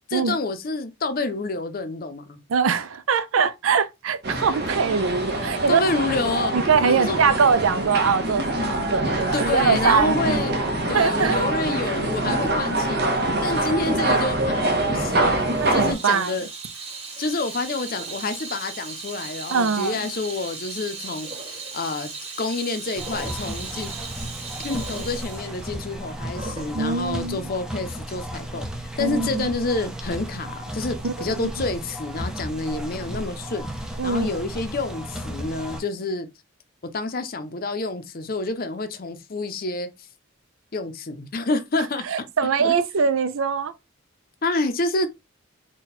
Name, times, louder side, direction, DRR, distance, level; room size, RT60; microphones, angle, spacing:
voice 1, 0.1-2.4 5.7-7.2 9.3-10.6 10.9-13.0 13.4-15.3 15.7-16.5 17.2-22.1 22.4-23.9 24.6-33.6 34.0-36.3 36.9-39.9 40.7-42.1 42.4-42.7 44.4-45.1, left 3 dB, 45° left, 0.6 m, -28 dB
voice 2, 2.5-5.8 6.5-10.4 10.9-11.4 15.6-16.3 19.5-20.0 26.7-27.5 29.0-29.5 31.0-31.5 34.0-34.3 42.1-43.7, right 5 dB, 80° right, 0.5 m, -22 dB
sound 1, 4.2-15.9, right 1 dB, 50° right, 0.9 m, -25 dB
Water tap faucet / Sink (filling or washing), 15.4-26.8, right 4 dB, 30° right, 1.5 m, -37 dB
sound 2, 22.9-35.8, equal, 5° right, 0.5 m, -34 dB
4.1 x 2.3 x 4.1 m
head